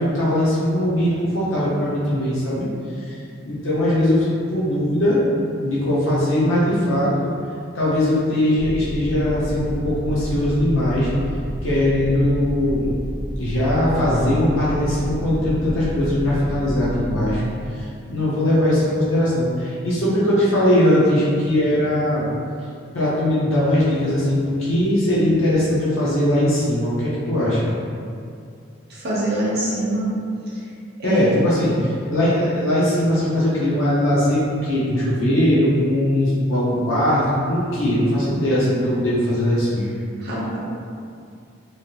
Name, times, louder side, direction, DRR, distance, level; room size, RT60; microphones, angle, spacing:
voice 1, 0.0-2.7 3.0-3.2 3.4-5.3 5.6-7.3 7.7-11.1 11.6-12.9 13.4-17.4 17.7-22.3 22.9-27.8 31.0-39.9, left 1 dB, 75° left, -8 dB, 0.7 m, -20 dB
sound 1, 8.6-17.4, equal, 55° left, 1.4 m, -30 dB
voice 2, 28.9-30.1 31.0-31.2 40.2-40.6, right 1 dB, 50° right, -7 dB, 0.8 m, -24 dB
3.1 x 2.5 x 2.8 m, 2.4 s
head